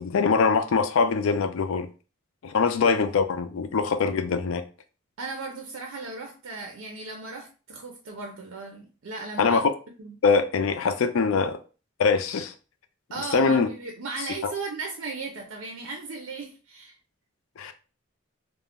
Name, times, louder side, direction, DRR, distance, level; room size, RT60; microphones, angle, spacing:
voice 1, 0.0-1.9 2.4-4.6 9.4-9.7 10.2-11.6 12.0-12.5 13.2-13.7 14.4-14.5 17.6-17.7, left 5 dB, 85° left, 0.4 m, -23 dB
voice 2, 5.2-9.6 10.0-10.1 13.1-17.0, right 3 dB, 85° right, 0.5 m, -36 dB
2.3 x 2.0 x 3.5 m
head